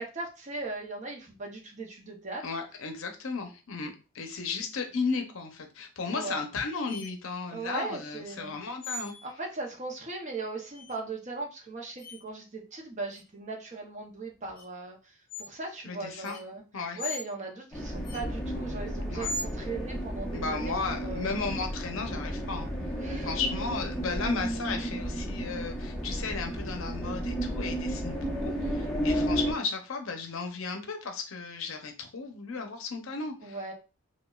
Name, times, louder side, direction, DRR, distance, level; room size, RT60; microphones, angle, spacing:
voice 1, 0.0-2.4 6.1-6.4 7.5-8.5 9.2-16.6 16.9-21.3 23.0-23.4 33.4-33.7, right 3 dB, 35° right, 1 dB, 0.7 m, -38 dB
voice 2, 2.4-9.1 15.9-16.4 16.7-17.0 19.1-19.3 20.3-22.7 23.2-33.6, left 4 dB, 65° left, 4 dB, 0.7 m, -35 dB
sound 1, 6.9-7.1 8.8-9.3 10.7-10.9 12.0-12.2 13.1-13.2 14.5-14.6 15.3-15.5 16.2-16.4 17.0-17.2 18.0-18.2 19.2-19.5, left 2 dB, 40° left, 0.9 m, -37 dB
sound 2, 17.7-29.5, equal, 5° left, 0.7 m, -33 dB
5.0 x 2.2 x 2.3 m, 0.32 s
head